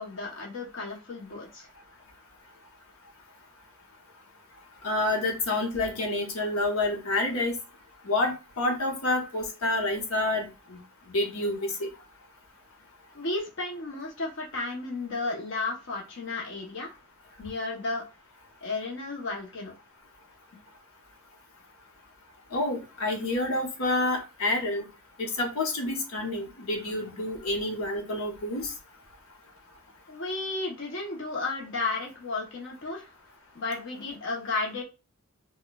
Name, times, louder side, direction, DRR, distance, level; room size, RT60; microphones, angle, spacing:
voice 1, 0.0-1.7 13.1-16.9 17.4-18.0 18.6-19.7 30.1-33.1 33.5-34.8, left 3 dB, 60° left, -1 dB, 0.8 m, -33 dB
voice 2, 4.8-7.6 8.0-10.8 11.1-11.9 22.5-24.8 25.2-28.7, left 2 dB, 85° left, 2 dB, 0.9 m, -28 dB
4.3 x 2.2 x 2.2 m, 0.29 s
head